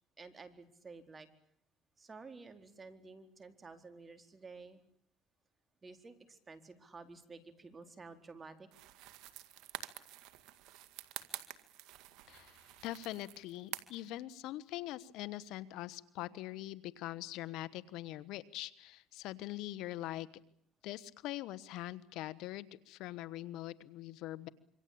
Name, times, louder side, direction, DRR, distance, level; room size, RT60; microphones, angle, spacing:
voice 1, 0.2-1.3 2.0-4.8 5.8-8.7, right 4 dB, 30° right, 8 dB, 4.2 m, -52 dB
sound 1, 8.7-14.1, right 13 dB, 75° right, 2.1 m, -48 dB
voice 2, 12.3-20.3 20.8-24.5, left 15 dB, 75° left, 17 dB, 1.3 m, -43 dB
26.5 x 25.0 x 8.7 m, 0.66 s
supercardioid pair, 85°, 0 cm